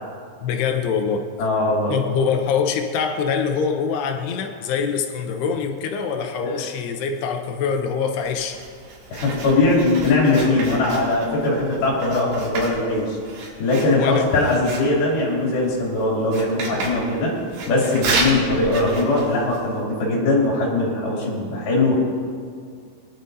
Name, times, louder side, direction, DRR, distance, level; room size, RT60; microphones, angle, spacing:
voice 1, 0.4-1.3 1.9-8.6 13.9-14.4 16.8-16.9, left 6 dB, 85° left, 5 dB, 3.0 m, -24 dB
voice 2, 1.4-1.9 6.4-6.5 9.1-13.2 13.6-17.3 17.7-22.0, left 2 dB, 70° left, -4 dB, 4.6 m, -20 dB
Writing, 8.2-19.8, right 3 dB, 85° right, 4.2 m, -32 dB
22.0 x 11.5 x 2.7 m, 2.1 s
omnidirectional pair, 4.6 m